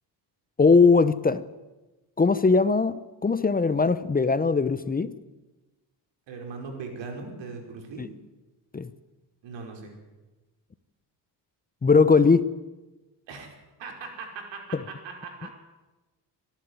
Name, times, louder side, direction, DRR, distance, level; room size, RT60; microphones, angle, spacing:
voice 1, 0.6-1.4 2.2-5.1 8.0-8.1 8.7-8.9 11.8-12.5 14.7-14.8, left 4 dB, 20° left, 14 dB, 0.8 m, -20 dB
voice 2, 6.3-8.1 9.4-9.9 13.3-13.5 13.8-15.5, right 4 dB, 85° right, 3 dB, 5.2 m, -39 dB
24.0 x 11.5 x 9.8 m, 1.1 s
cardioid pair, 100°, 43 cm